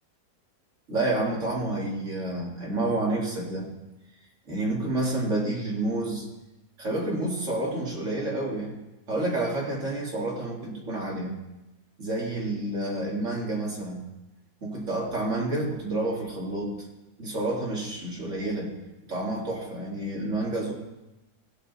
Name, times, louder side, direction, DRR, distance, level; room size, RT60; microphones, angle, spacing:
voice 1, 0.9-3.7 4.5-6.3 6.8-8.8 9.1-11.3 12.0-14.0 14.6-16.8 17.2-18.7 19.1-20.7, right 2 dB, 35° right, -3 dB, 2.6 m, -29 dB
16.0 x 8.2 x 4.1 m, 0.99 s
omnidirectional pair, 2.2 m